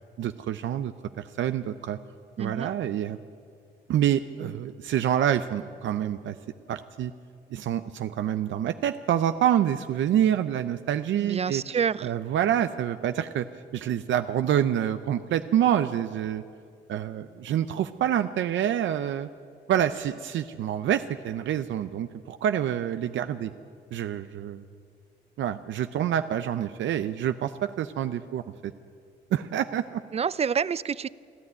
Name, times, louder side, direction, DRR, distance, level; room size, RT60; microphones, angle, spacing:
voice 1, 0.2-0.9 1.4-2.0 2.4-3.2 3.9-6.3 6.7-7.1 7.5-11.6 12.0-13.5 13.7-16.4 16.9-19.3 19.7-23.5 23.9-24.6 25.4-28.7 29.3-30.0, right 10 dB, 70° right, 10 dB, 0.7 m, -27 dB
voice 2, 2.4-2.7 11.2-12.1 30.1-31.1, right 7 dB, 30° right, 19 dB, 0.5 m, -28 dB
28.5 x 11.5 x 9.6 m, 2.3 s
cardioid pair, 90°, 20 cm